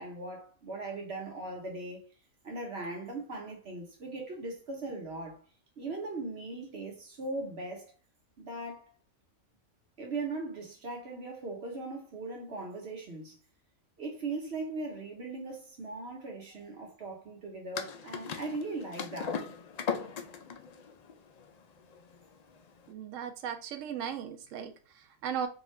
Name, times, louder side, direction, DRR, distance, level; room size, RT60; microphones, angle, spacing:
voice 1, 0.0-2.0 2.4-5.4 5.8-7.9 8.4-8.9 10.0-13.4 14.0-19.4, right 3 dB, 60° right, 1.3 m, -39 dB
sound 1, 17.8-22.9, left 6 dB, 85° left, 0.3 m, -38 dB
voice 2, 22.9-25.5, right 8 dB, 90° right, 0.9 m, -37 dB
3.6 x 2.5 x 3.1 m
omnidirectional pair, 1.3 m